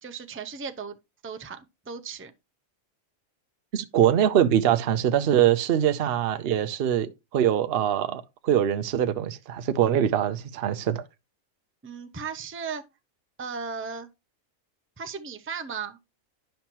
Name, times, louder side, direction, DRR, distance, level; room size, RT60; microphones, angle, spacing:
voice 1, 0.0-1.0 1.2-2.3 11.8-12.8 13.4-14.1 15.0-16.0, right 5 dB, 20° right, 0.4 m, -36 dB
voice 2, 3.7-11.0, right 10 dB, 55° right, 0.8 m, -23 dB
10.5 x 5.6 x 3.0 m
omnidirectional pair, 1.5 m